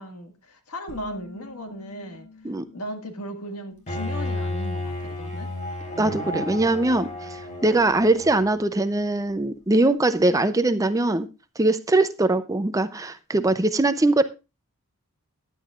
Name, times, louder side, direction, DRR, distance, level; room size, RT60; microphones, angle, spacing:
voice 1, 0.0-2.3 2.7-5.5, equal, 80° left, 5 dB, 1.8 m, -36 dB
sound 1, 0.9-6.3, left 3 dB, 5° left, 3.9 m, -49 dB
Bowed string instrument, 3.9-8.6, left 1 dB, 35° left, 3.8 m, -32 dB
voice 2, 6.0-11.3 11.6-14.2, right 2 dB, 15° right, 11 dB, 0.5 m, -21 dB
15.5 x 10.5 x 2.4 m, 0.28 s
head